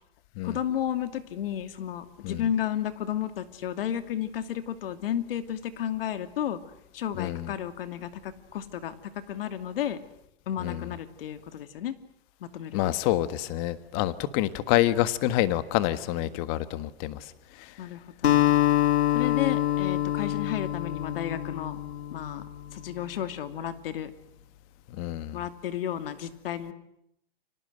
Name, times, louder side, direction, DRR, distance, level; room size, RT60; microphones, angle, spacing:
voice 1, 0.4-6.6 6.9-10.0 10.5-12.0 12.4-12.9 17.8-18.5 19.1-21.8 22.1-24.1 25.3-26.7, left 10 dB, 65° left, 10 dB, 2.6 m, -32 dB
voice 2, 7.2-7.5 10.6-10.9 12.7-17.3 17.6-17.7 25.0-25.4, left 14 dB, 35° left, 13 dB, 1.6 m, -27 dB
Acoustic guitar, 18.2-22.7, left 13 dB, 85° left, 2.0 m, -25 dB
29.5 x 25.0 x 8.0 m, 0.78 s
hypercardioid pair, 150°, 31 cm